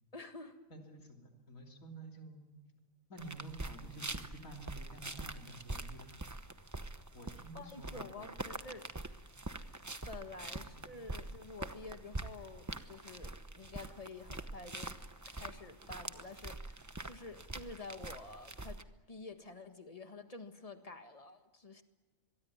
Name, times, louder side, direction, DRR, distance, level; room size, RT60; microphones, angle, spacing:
voice 1, 0.1-0.6 7.5-8.9 10.1-15.0 15.3-18.8 19.1-21.8, left 3 dB, 25° left, 7 dB, 1.7 m, -49 dB
voice 2, 0.7-2.5 3.1-6.4 7.1-8.3 10.4-10.9, right 2 dB, 75° left, 2 dB, 3.7 m, -51 dB
sound 1, 3.2-18.8, right 2 dB, 15° right, 0.8 m, -45 dB
24.0 x 22.5 x 9.6 m, 1.2 s
omnidirectional pair, 1.4 m